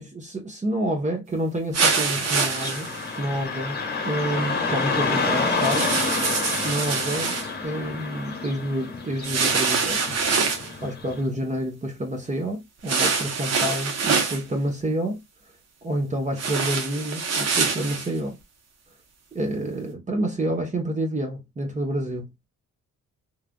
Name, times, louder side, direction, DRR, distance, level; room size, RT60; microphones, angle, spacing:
voice 1, 0.0-2.9 3.2-5.9 6.6-7.3 7.6-10.0 10.8-15.2 15.8-18.4 19.3-22.3, right 1 dB, 25° right, 0.9 m, -28 dB
sound 1, 1.7-3.1 5.5-7.5 9.2-10.7 12.9-14.4 16.4-18.1, right 5 dB, 55° right, 1.0 m, -25 dB
Car passing by / Traffic noise roadway noise, 2.2-11.2, left 4 dB, 35° left, 1.2 m, -29 dB
3.2 x 2.4 x 2.2 m
cardioid pair, 90°, 30 cm